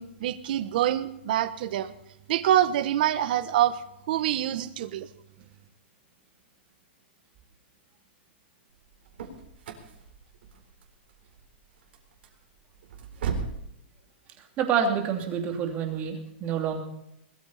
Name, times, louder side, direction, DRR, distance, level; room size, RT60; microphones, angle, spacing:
voice 1, 0.0-1.9 2.3-3.8 4.1-5.1, right 12 dB, 50° right, 13 dB, 1.2 m, -25 dB
sound 1, 8.7-13.7, right 6 dB, 65° right, 4.0 m, -37 dB
voice 2, 14.6-16.8, right 7 dB, 25° right, 4 dB, 2.8 m, -27 dB
21.0 x 14.0 x 4.2 m, 0.78 s
hypercardioid pair, 170°, 6 cm